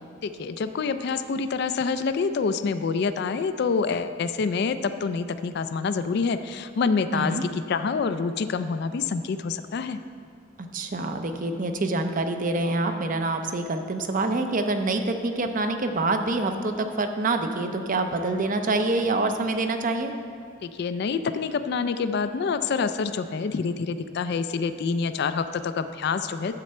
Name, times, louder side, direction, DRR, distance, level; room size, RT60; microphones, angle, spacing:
voice 1, 0.2-10.0 20.6-26.5, left 5 dB, 55° left, 11 dB, 0.3 m, -27 dB
voice 2, 7.1-7.4 10.6-20.1, right 2 dB, 40° right, 7 dB, 0.6 m, -26 dB
10.5 x 7.6 x 4.3 m, 2.2 s
head